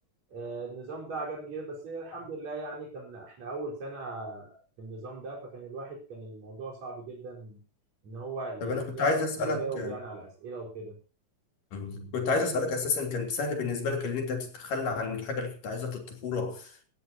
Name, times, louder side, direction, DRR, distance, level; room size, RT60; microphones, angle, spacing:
voice 1, 0.3-7.6 8.0-10.9, right 3 dB, 50° right, 5.6 m, -39 dB
voice 2, 8.6-10.0 11.7-16.9, left 3 dB, 70° left, 4.8 m, -30 dB
17.0 x 16.0 x 2.8 m
omnidirectional pair, 4.0 m